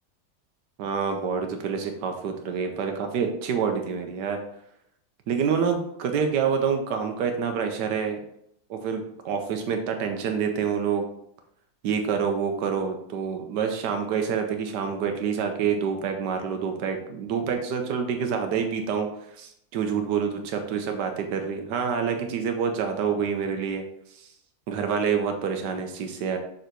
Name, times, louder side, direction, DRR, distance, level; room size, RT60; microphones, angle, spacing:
voice 1, 0.8-4.4 5.3-8.2 8.7-11.1 11.8-23.8 24.1-24.3 24.7-26.4, right 6 dB, 90° right, 5 dB, 1.4 m, -27 dB
6.8 x 3.9 x 4.5 m, 0.74 s
omnidirectional pair, 1.8 m